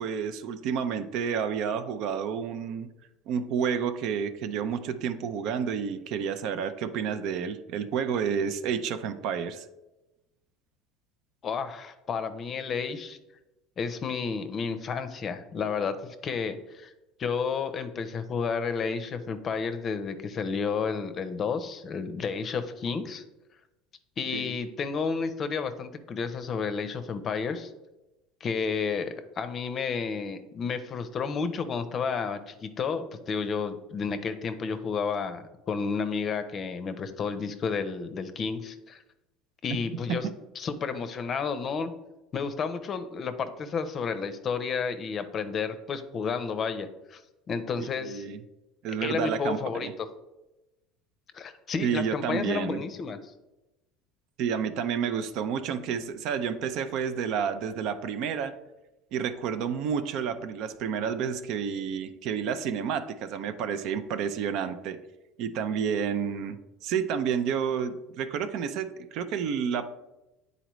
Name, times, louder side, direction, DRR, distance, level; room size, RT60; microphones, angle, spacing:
voice 1, 0.0-2.9 3.3-9.7 24.3-24.5 39.7-39.8 40.2-40.3 47.8-48.4 48.8-49.9 51.8-52.8 54.4-58.5 59.1-65.0 65.4-69.9, right 7 dB, 60° right, 10 dB, 0.5 m, -30 dB
voice 2, 11.4-13.2 13.8-16.9 17.2-23.2 24.2-27.7 28.4-39.0 39.6-40.3 40.6-41.9 42.3-47.2 47.5-48.3 49.0-50.1 51.3-53.2, left 5 dB, 35° left, 10 dB, 0.6 m, -31 dB
9.1 x 4.0 x 3.1 m, 1.0 s
supercardioid pair, 115°, 0 cm